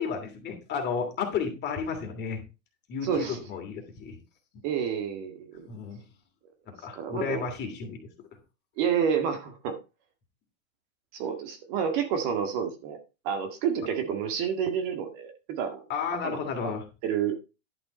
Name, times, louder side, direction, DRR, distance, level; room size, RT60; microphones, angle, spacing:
voice 1, 0.0-2.4 2.9-4.2 5.7-6.0 6.8-8.1 15.9-16.8, left 6 dB, 25° left, 4 dB, 2.8 m, -32 dB
voice 2, 3.0-3.4 4.6-5.6 6.9-7.5 8.8-9.8 11.1-13.0 13.2-15.8 16.2-16.4 17.0-17.4, right 7 dB, 40° right, 6 dB, 1.9 m, -29 dB
11.0 x 6.1 x 4.3 m, 0.29 s
hypercardioid pair, 140°, 41 cm